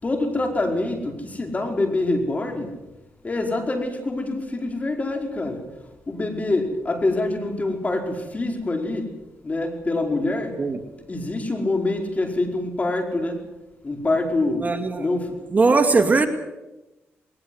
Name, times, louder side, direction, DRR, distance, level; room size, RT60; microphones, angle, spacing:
voice 1, 0.0-2.7 3.2-5.7 6.1-9.1 9.4-10.6 11.1-13.4 13.8-15.3, left 2 dB, 30° left, 4 dB, 5.0 m, -25 dB
voice 2, 14.6-15.0 15.5-16.3, right 3 dB, 35° right, 7 dB, 2.4 m, -19 dB
20.5 x 20.0 x 8.0 m, 1.0 s
cardioid pair, 75°, 5 cm